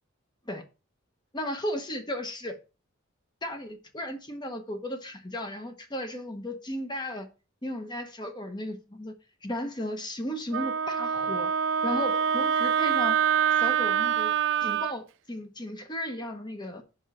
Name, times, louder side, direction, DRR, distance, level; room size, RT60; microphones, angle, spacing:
voice 1, 1.3-2.6 3.4-7.3 7.6-9.1 9.4-11.5 11.8-13.2 13.6-14.3 14.6-16.8, left 1 dB, 20° left, 1.1 m, -35 dB
Wind instrument woodwind instrument, 10.5-14.9, right 8 dB, 65° right, 0.3 m, -25 dB
5.4 x 5.4 x 6.1 m
head